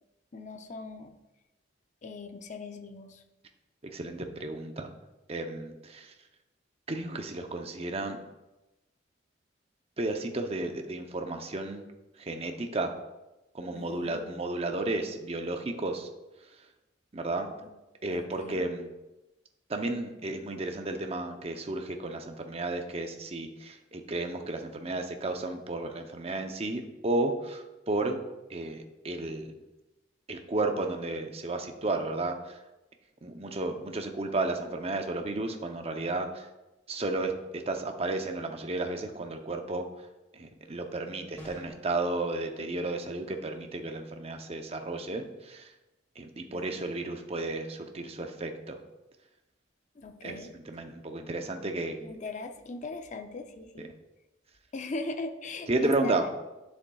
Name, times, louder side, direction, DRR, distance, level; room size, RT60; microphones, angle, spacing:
voice 1, 0.3-1.2 2.0-3.2 13.7-14.2 18.1-18.6 46.5-46.9 50.0-50.5 52.0-53.9 54.7-56.3, left 3 dB, 40° left, 6 dB, 0.5 m, -40 dB
voice 2, 3.8-4.9 5.3-6.1 6.9-8.2 10.0-11.9 12.2-12.9 13.5-16.1 17.1-17.5 18.0-18.9 19.7-28.2 28.5-29.5 30.3-32.6 33.2-36.5 36.9-39.9 40.3-45.7 46.2-48.8 50.2-52.0 55.7-56.3, right 2 dB, 35° right, 5 dB, 0.7 m, -33 dB
sound 1, 41.4-41.9, equal, 10° left, 2.1 m, -46 dB
10.0 x 7.0 x 2.3 m, 1.0 s
head